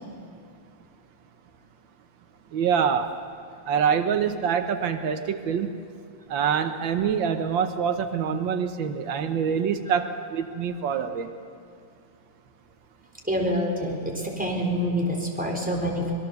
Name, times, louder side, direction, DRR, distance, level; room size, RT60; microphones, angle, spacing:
voice 1, 2.5-3.1 3.7-5.7 6.3-11.3, right 7 dB, 85° right, 8 dB, 1.7 m, -25 dB
voice 2, 13.2-16.1, equal, 5° right, -2 dB, 4.1 m, -26 dB
25.5 x 21.0 x 6.9 m, 2.4 s
omnidirectional pair, 2.0 m